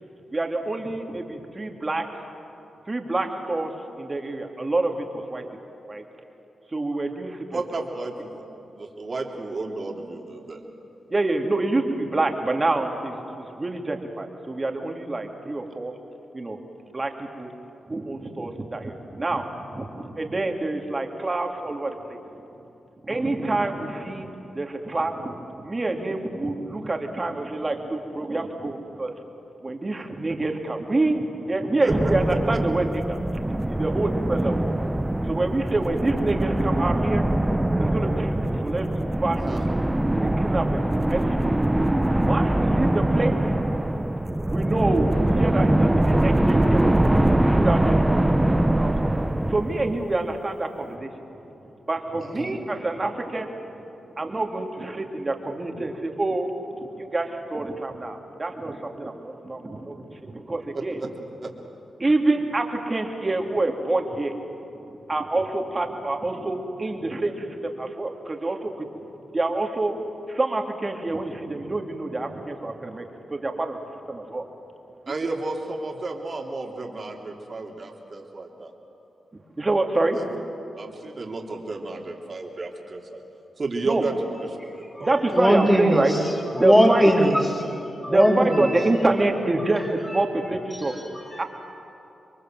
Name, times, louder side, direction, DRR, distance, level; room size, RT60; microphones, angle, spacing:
voice 1, 0.3-2.0 2.9-3.7 4.0-5.4 5.9-6.0 6.7-7.6 11.1-15.9 16.3-16.6 16.9-17.5 17.9-19.4 19.7-22.2 23.0-24.3 24.5-29.1 29.6-37.3 37.6-39.6 40.2-41.6 41.9-43.5 44.5-47.0 47.3-49.1 49.5-51.1 51.9-53.8 54.2-56.5 56.8-61.0 62.0-64.4 64.9-68.9 69.3-70.0 70.3-73.8 74.1-74.4 79.6-80.2 83.8-84.1 85.0-86.1 86.5-87.3 88.1-90.9 91.4-91.5, right 2 dB, 30° right, 3 dB, 2.9 m, -27 dB
voice 2, 7.5-8.4 8.7-10.6 30.0-30.1 31.8-32.1 39.4-39.7 52.2-52.6 60.7-61.1 61.4-61.5 75.1-78.7 80.1-80.3 80.7-83.2 83.6-84.2 84.7-85.2, right 3 dB, 50° right, 1 dB, 3.4 m, -32 dB
sound 1, 31.9-50.3, right 1 dB, 15° right, 0.9 m, -23 dB
voice 3, 85.4-86.2 86.5-88.9 89.6-89.9 90.9-91.4, equal, 10° left, 0 dB, 4.0 m, -21 dB
26.5 x 23.0 x 7.7 m, 2.9 s
cardioid pair, 60°, 0 cm